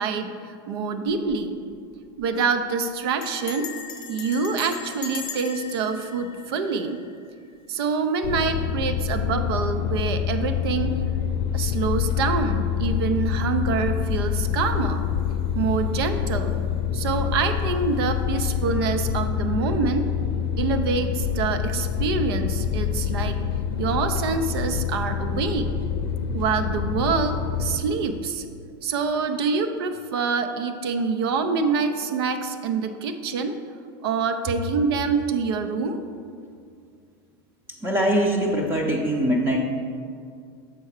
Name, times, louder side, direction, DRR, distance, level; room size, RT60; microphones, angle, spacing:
voice 1, 0.0-1.6 2.2-3.7 4.1-7.0 7.7-11.0 11.5-15.0 15.5-16.6 16.9-20.0 20.6-23.4 23.8-25.7 26.3-28.4 28.8-33.5 34.0-36.0, right 5 dB, 85° right, 7 dB, 0.5 m, -26 dB
Bell, 1.1-1.4 1.7-1.8 2.0-2.4 3.2-7.3, left 8 dB, 40° left, 0.7 m, -38 dB
sound 1, 8.2-27.8, left 8 dB, 80° left, 0.5 m, -26 dB
voice 2, 37.7-39.6, equal, 15° right, -1 dB, 0.6 m, -22 dB
6.8 x 4.4 x 4.8 m, 2.3 s
supercardioid pair, 140°, 12 cm